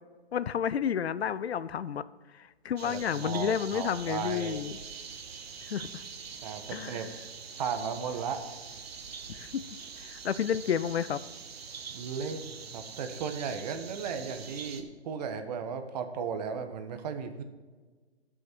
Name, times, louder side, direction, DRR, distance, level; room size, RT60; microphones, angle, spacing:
voice 1, 0.3-2.0 2.3-4.7 5.7-6.0 6.7-7.1 9.3-9.6 10.0-11.2, left 8 dB, 75° left, 17 dB, 0.6 m, -31 dB
voice 2, 2.8-4.6 6.4-7.1 7.6-8.4 11.9-17.4, right 6 dB, 40° right, 7 dB, 1.2 m, -35 dB
sound 1, 2.8-14.8, right 6 dB, 65° right, 1.5 m, -44 dB
17.5 x 6.3 x 4.6 m, 1.4 s
hypercardioid pair, 145°, 32 cm